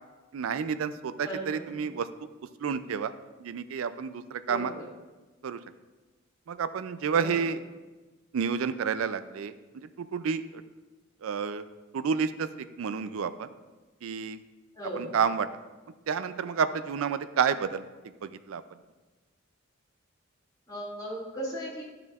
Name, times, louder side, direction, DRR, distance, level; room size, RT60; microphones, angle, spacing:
voice 1, 0.3-2.1 2.6-3.1 3.4-4.7 5.4-5.6 6.5-7.6 8.3-10.6 11.2-11.7 11.9-13.5 14.0-14.4 15.0-15.5 16.1-17.8 18.2-18.6, right 6 dB, 80° right, 13 dB, 0.4 m, -30 dB
voice 2, 1.2-1.8 4.5-4.9 7.1-7.4 14.7-15.2 20.7-21.8, right 1 dB, 20° left, -8 dB, 2.2 m, -37 dB
12.0 x 6.7 x 2.4 m, 1.2 s
head